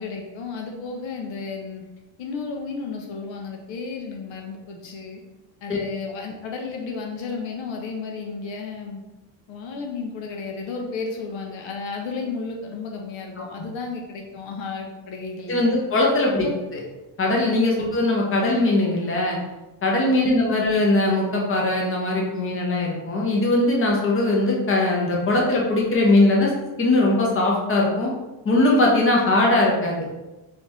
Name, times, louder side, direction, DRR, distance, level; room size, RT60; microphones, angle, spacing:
voice 1, 0.0-1.8 2.2-5.2 5.6-9.0 9.5-15.8 16.3-16.6 17.8-17.9 20.2-20.6, left 4 dB, 70° left, 2 dB, 0.8 m, -33 dB
voice 2, 15.5-16.5 17.2-19.4 19.8-26.5 26.8-28.1 28.4-30.1, left 2 dB, 25° left, -2 dB, 1.0 m, -20 dB
4.0 x 3.5 x 3.0 m, 1.1 s
cardioid pair, 125°, 47 cm